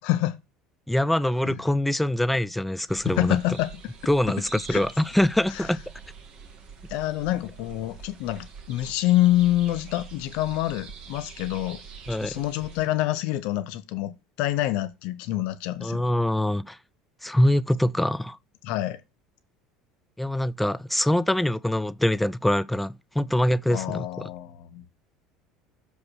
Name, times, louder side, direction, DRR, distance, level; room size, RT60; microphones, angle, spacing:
voice 1, 0.0-0.4 1.4-1.5 3.0-3.7 4.7-4.8 6.9-11.8 12.2-16.1 18.6-19.0 23.7-24.8, left 15 dB, 55° left, 1.0 m, -26 dB
voice 2, 0.9-3.4 4.1-5.8 12.1-12.3 15.8-16.8 17.2-18.4 20.2-24.1, left 1 dB, 5° left, 0.5 m, -24 dB
sound 1, 2.9-12.9, right 6 dB, 45° right, 2.1 m, -45 dB
7.0 x 5.2 x 6.2 m
figure-of-eight pair, 65°, 2 cm